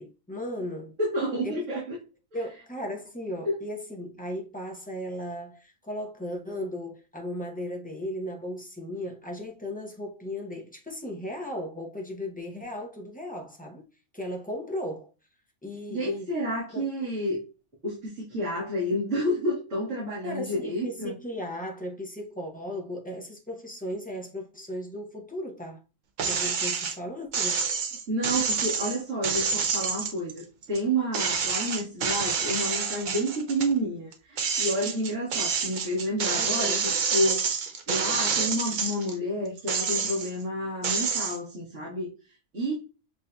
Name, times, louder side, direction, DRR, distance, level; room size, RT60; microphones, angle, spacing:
voice 1, 0.0-0.9 1.4-1.6 2.3-13.9 14.1-15.1 15.6-16.3 16.7-16.9 20.2-25.8 26.3-27.6 36.3-36.8, left 1 dB, 10° left, 0.4 m, -36 dB
voice 2, 1.0-2.0 3.5-3.6 15.9-17.4 17.8-21.1 28.1-30.4 30.7-36.8 37.1-37.5 37.9-42.1 42.5-42.7, equal, 75° right, 1.9 m, -29 dB
sound 1, 26.2-27.0 27.3-30.8 31.1-33.7 34.1-39.1 39.6-40.4 40.8-41.4, right 5 dB, 55° right, 0.5 m, -28 dB
7.2 x 2.6 x 2.2 m
omnidirectional pair, 1.3 m